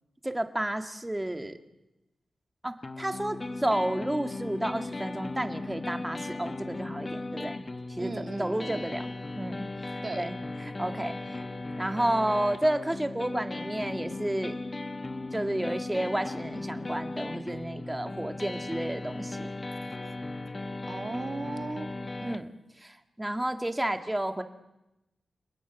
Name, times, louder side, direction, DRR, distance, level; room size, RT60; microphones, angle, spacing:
voice 1, 0.2-1.6 2.6-7.6 8.0-8.1 8.4-9.1 9.4-9.7 10.2-11.5 11.8-14.6 15.3-19.5 22.2-22.5 22.8-24.4, right 1 dB, 15° right, 7 dB, 2.0 m, -31 dB
sound 1, 2.8-22.4, left 2 dB, 30° left, 1.1 m, -37 dB
voice 2, 8.0-8.8 10.0-10.3 20.9-21.9, right 3 dB, 40° right, 8 dB, 1.9 m, -37 dB
29.0 x 19.5 x 9.3 m, 0.97 s
wide cardioid pair, 80°, 0 cm